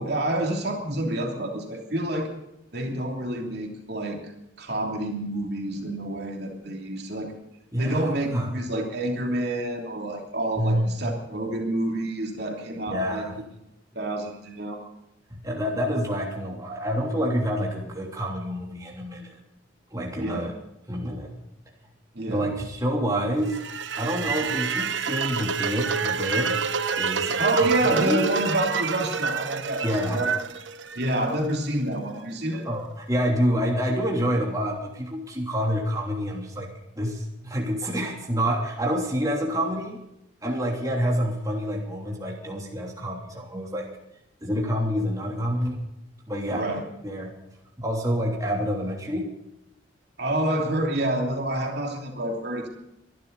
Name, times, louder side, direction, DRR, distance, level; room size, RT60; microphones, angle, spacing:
voice 1, 0.0-2.3 2.7-4.2 4.6-7.3 7.8-13.2 13.9-14.8 20.2-20.4 22.1-22.5 27.3-29.8 30.1-30.3 30.9-32.6 46.5-46.8 50.2-52.7, right 1 dB, 60° right, 1 dB, 3.0 m, -28 dB
voice 2, 7.7-8.5 10.6-10.9 12.9-13.4 15.3-19.4 19.9-20.5 20.9-21.4 22.3-23.6 24.0-26.6 27.0-28.2 29.8-30.2 32.6-36.7 37.0-40.0 40.4-43.9 44.4-45.8 46.3-46.7 47.0-47.3 47.8-49.2, equal, 20° right, -1 dB, 3.2 m, -27 dB
sound 1, 23.5-31.6, right 6 dB, 80° right, 1.0 m, -28 dB
24.0 x 12.0 x 4.1 m, 0.86 s
head